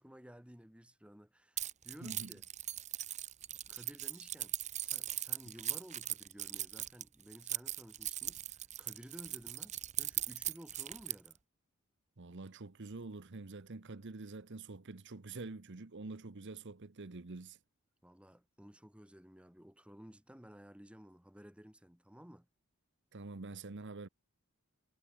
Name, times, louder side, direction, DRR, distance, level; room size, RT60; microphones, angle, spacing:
voice 1, 0.0-2.4 3.7-11.4 18.0-22.5, equal, 5° right, 2.0 m, -55 dB
Keys jangling, 1.6-11.3, right 12 dB, 30° right, 0.9 m, -39 dB
voice 2, 2.0-2.3 12.2-17.6 23.1-24.1, right 3 dB, 55° right, 1.0 m, -46 dB
head